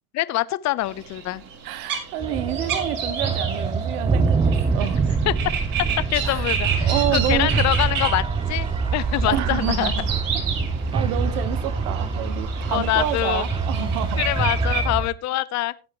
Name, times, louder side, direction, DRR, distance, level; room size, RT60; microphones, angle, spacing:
voice 1, 0.1-1.4 5.3-5.4 6.1-8.2 8.5-9.9 12.7-13.5 14.2-15.7, left 16 dB, 35° left, 0.8 m, -24 dB
sound 1, 0.8-14.9, right 6 dB, 45° right, 4.8 m, -32 dB
voice 2, 1.6-5.0 6.2-6.5 6.8-7.5 9.3-10.1 10.9-14.3, right 12 dB, 70° right, 1.4 m, -28 dB
sound 2, 2.2-15.1, right 4 dB, 10° right, 0.6 m, -25 dB
16.5 x 8.6 x 3.0 m
hypercardioid pair, 110°, 45 cm